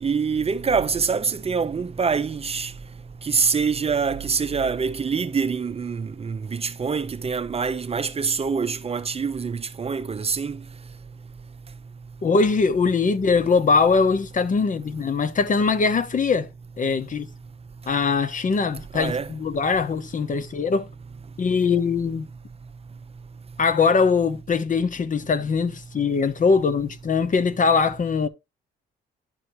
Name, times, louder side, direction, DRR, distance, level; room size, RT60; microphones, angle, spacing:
voice 1, 0.0-2.7 3.2-10.6 18.9-19.3, right 5 dB, 30° right, 0.7 m, -25 dB
voice 2, 12.2-16.5 16.8-17.3 17.9-20.9 21.4-22.3 23.6-28.3, left 5 dB, 40° left, 0.9 m, -21 dB
11.0 x 4.4 x 3.0 m
cardioid pair, 90°, 20 cm